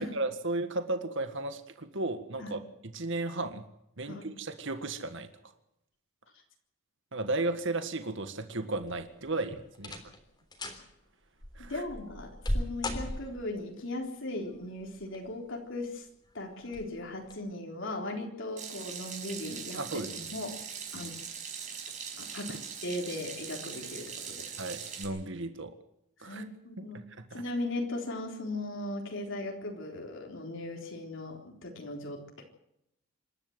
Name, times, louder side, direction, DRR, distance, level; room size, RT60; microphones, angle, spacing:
voice 1, 0.1-2.6 2.9-3.6 4.0-5.3 7.1-10.0 11.5-11.8 19.8-20.3 20.9-21.1 24.6-25.7 26.2-26.4 26.8-26.9 27.2-27.4, right 2 dB, 60° right, 8 dB, 1.8 m, -34 dB
sound 1, 8.8-9.3 9.7-10.2 10.5-10.8 11.4-13.6 14.8-15.4 15.8-15.9 16.7-16.9 17.3-17.4, left 1 dB, 20° left, 3.5 m, -36 dB
voice 2, 11.7-16.1 16.3-20.0 20.3-20.6 20.9-21.2 22.2-22.6 22.8-24.5 26.2-27.0 27.3-32.4, left 2 dB, 60° left, 1 dB, 3.8 m, -38 dB
Water tap faucet / Sink (filling or washing), 18.6-25.0, right 7 dB, 35° right, 5.2 m, -41 dB
27.0 x 13.0 x 8.0 m, 0.79 s
head